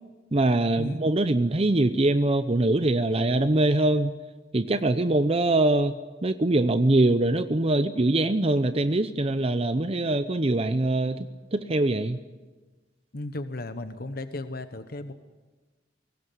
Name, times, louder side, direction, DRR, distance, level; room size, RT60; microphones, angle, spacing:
voice 1, 0.3-4.1 4.5-11.3 11.5-12.2, right 2 dB, 35° right, 11 dB, 0.7 m, -23 dB
voice 2, 13.1-15.1, left 2 dB, 55° left, 10 dB, 1.1 m, -35 dB
22.5 x 19.0 x 9.3 m, 1.3 s
head